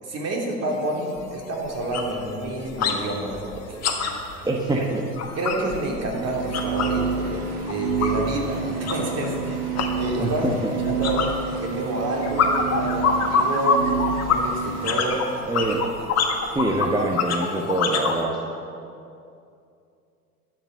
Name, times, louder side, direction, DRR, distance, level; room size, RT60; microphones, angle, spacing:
voice 1, 0.0-3.9 4.7-4.8 5.3-10.5 10.8-11.2 11.6-13.8 14.3-15.3, right 2 dB, 35° right, -1 dB, 3.0 m, -28 dB
sound 1, 0.7-0.8 1.2-1.4 1.7-3.0 3.3-7.0 7.3-18.2, left 5 dB, 35° left, 1.7 m, -26 dB
voice 2, 4.4-5.0 10.2-10.7 15.4-15.8 16.5-18.3, right 2 dB, 10° right, 0 dB, 1.1 m, -25 dB
sound 2, 6.1-15.2, right 5 dB, 80° right, 1.7 m, -29 dB
12.0 x 8.1 x 7.2 m, 2.5 s
figure-of-eight pair, 75°, 44 cm